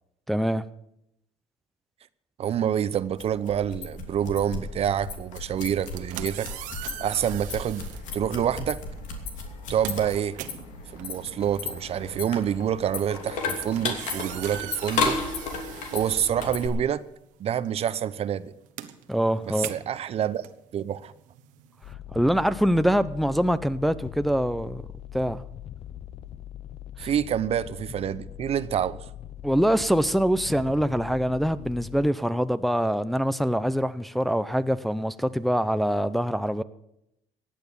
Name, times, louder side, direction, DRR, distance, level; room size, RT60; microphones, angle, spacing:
voice 1, 0.3-0.6 19.1-19.7 22.1-24.8 25.1-25.4 27.0-27.1 29.4-36.6, equal, ahead, 11 dB, 0.6 m, -24 dB
voice 2, 2.4-6.5 7.0-7.8 8.1-8.8 9.7-10.4 10.9-15.2 15.9-17.0 17.4-18.5 19.5-20.4 20.7-21.1 27.0-29.0, right 9 dB, 50° right, 15 dB, 0.7 m, -27 dB
sound 1, 2.9-16.7, left 4 dB, 75° left, 2.8 m, -34 dB
sound 2, 5.7-8.1 9.0-9.2 9.5-17.0 17.3-21.9, right 13 dB, 85° right, 1.2 m, -41 dB
sound 3, 21.8-32.1, left 11 dB, 55° left, 0.8 m, -41 dB
15.5 x 9.3 x 7.0 m, 0.80 s
cardioid pair, 90°, 13 cm